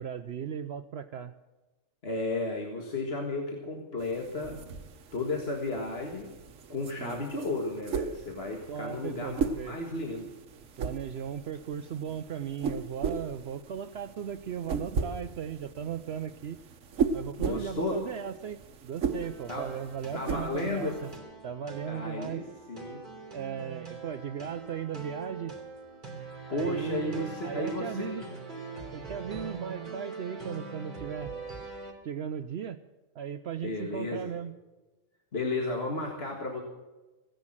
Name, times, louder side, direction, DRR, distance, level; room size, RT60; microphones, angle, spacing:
voice 1, 0.0-1.3 7.0-7.2 8.7-9.8 10.8-16.6 17.1-21.1 21.4-22.4 23.3-25.5 26.5-28.2 28.9-31.3 32.0-32.8 33.1-34.5, right 8 dB, 60° right, 10 dB, 0.8 m, -37 dB
voice 2, 2.0-4.6 5.1-6.4 6.7-10.3 17.4-18.0 19.5-19.8 20.1-21.0 21.9-23.0 26.5-28.4 33.6-34.3 35.3-36.6, left 2 dB, 50° left, 1 dB, 2.0 m, -33 dB
sound 1, 4.0-21.2, right 5 dB, 80° right, 1.4 m, -37 dB
sound 2, 19.1-31.9, right 4 dB, 35° right, 3.3 m, -43 dB
16.5 x 10.5 x 7.4 m, 1.2 s
omnidirectional pair, 1.3 m